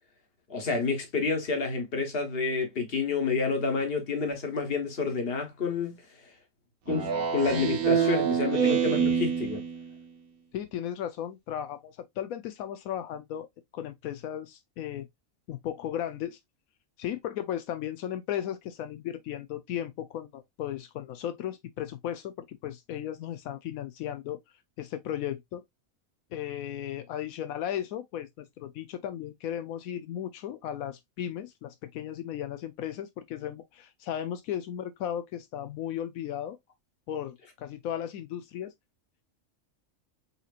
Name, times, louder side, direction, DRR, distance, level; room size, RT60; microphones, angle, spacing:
voice 1, 0.5-6.0 6.9-9.6, left 4 dB, 45° left, 1.5 m, -29 dB
Speech synthesizer, 6.9-9.9, right 7 dB, 85° right, 1.4 m, -26 dB
voice 2, 10.5-13.5 13.7-15.1 15.5-16.4 17.0-24.4 24.8-25.6 26.3-36.6 37.1-38.7, left 10 dB, 85° left, 1.0 m, -35 dB
5.6 x 2.9 x 2.4 m
omnidirectional pair, 1.4 m